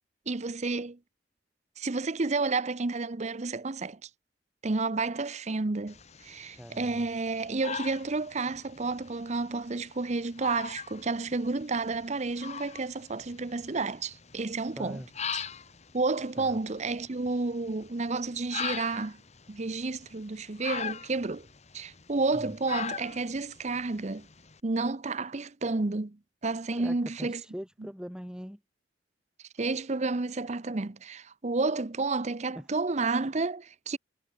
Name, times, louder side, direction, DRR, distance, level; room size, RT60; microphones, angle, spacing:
voice 1, 0.3-1.0 1.8-4.1 4.6-6.0 6.2-15.0 15.3-15.4 15.9-19.2 19.5-21.5 21.7-24.3 24.6-27.4 29.6-34.0, right 3 dB, 40° right, 0.8 m, -31 dB
sound 1, 5.9-24.6, left 6 dB, 40° left, 1.5 m, -42 dB
voice 2, 6.6-7.1 14.8-15.1 16.4-16.6 22.3-22.6 26.7-28.6 32.5-32.7, equal, 5° right, 4.2 m, -42 dB
head